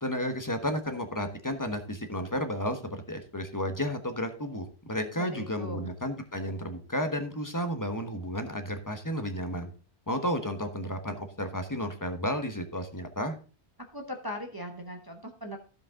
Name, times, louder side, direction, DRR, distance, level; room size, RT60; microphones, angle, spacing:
voice 1, 0.0-9.7 10.1-13.4, equal, 20° left, 6 dB, 1.1 m, -32 dB
voice 2, 5.2-5.9 13.9-15.6, left 1 dB, 20° right, 3 dB, 1.0 m, -39 dB
15.0 x 5.2 x 3.7 m, 0.37 s
omnidirectional pair, 1.1 m